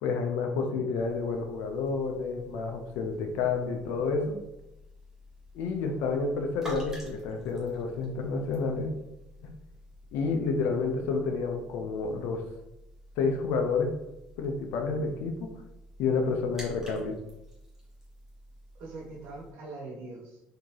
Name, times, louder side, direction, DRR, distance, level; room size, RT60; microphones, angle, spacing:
voice 1, 0.0-4.4 5.5-8.9 9.4-9.5 10.1-12.4 13.2-13.9 14.4-15.5 16.0-17.2, left 4 dB, 85° left, 4 dB, 0.5 m, -29 dB
sound 1, 0.9-19.5, equal, 10° right, 1.4 m, -50 dB
voice 2, 18.8-20.4, right 2 dB, 75° right, -4 dB, 1.2 m, -43 dB
3.5 x 2.8 x 3.2 m, 0.92 s
cardioid pair, 100°, 4 cm